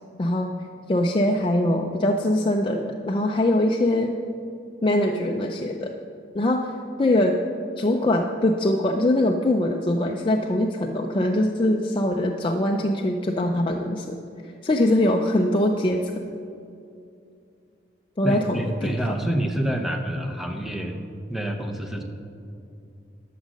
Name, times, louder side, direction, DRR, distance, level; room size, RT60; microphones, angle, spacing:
voice 1, 0.2-0.5 0.9-4.1 4.8-5.9 6.3-7.3 7.8-14.2 14.6-16.1 18.2-18.9, left 1 dB, 30° left, 2 dB, 0.5 m, -22 dB
voice 2, 18.2-21.0 21.3-22.0, right 1 dB, ahead, 3 dB, 0.8 m, -27 dB
12.0 x 6.3 x 6.3 m, 2.6 s
head